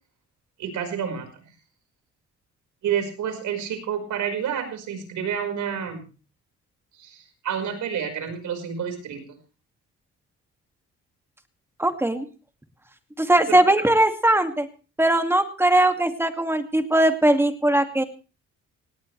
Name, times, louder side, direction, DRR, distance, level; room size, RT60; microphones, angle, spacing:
voice 1, 0.6-1.4 2.8-6.0 6.9-9.2 13.5-13.6, right 8 dB, 80° right, 6 dB, 5.1 m, -29 dB
voice 2, 11.8-12.3 13.2-14.7 15.0-18.0, right 1 dB, 10° right, 7 dB, 2.3 m, -20 dB
18.5 x 17.5 x 3.3 m, 0.35 s
cardioid pair, 90°, 30 cm